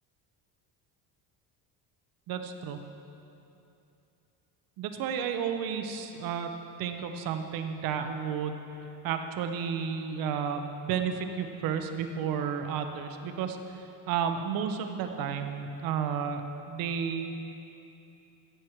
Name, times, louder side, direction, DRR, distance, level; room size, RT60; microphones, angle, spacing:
voice 1, 2.3-2.8 4.8-6.5 6.8-8.6 9.0-17.3, right 7 dB, 60° right, 7 dB, 1.0 m, -32 dB
14.5 x 8.2 x 4.6 m, 2.8 s
cardioid pair, 150°, 39 cm